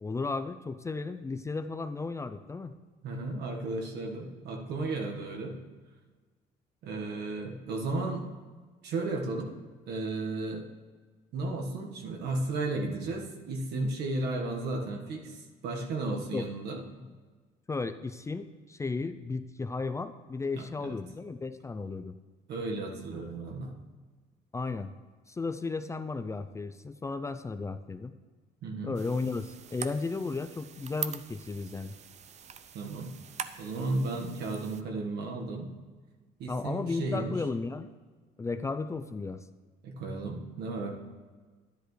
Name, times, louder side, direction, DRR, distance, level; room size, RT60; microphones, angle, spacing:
voice 1, 0.0-2.7 16.3-16.5 17.0-17.1 17.7-22.1 24.5-24.9 25.3-28.1 28.8-31.9 36.5-37.9 38.4-39.4, left 3 dB, 15° left, 9 dB, 0.4 m, -34 dB
voice 2, 3.0-5.6 6.8-8.2 8.8-9.5 9.8-10.6 11.3-15.4 15.6-16.8 20.5-21.0 22.5-23.7 28.6-29.0 32.7-33.1 33.6-35.7 36.4-37.3 39.8-41.0, right 2 dB, 75° right, 2 dB, 1.5 m, -34 dB
sound 1, 28.9-34.8, right 8 dB, 40° right, 0.5 m, -43 dB
11.5 x 10.5 x 3.2 m, 1.4 s
cardioid pair, 110°, 17 cm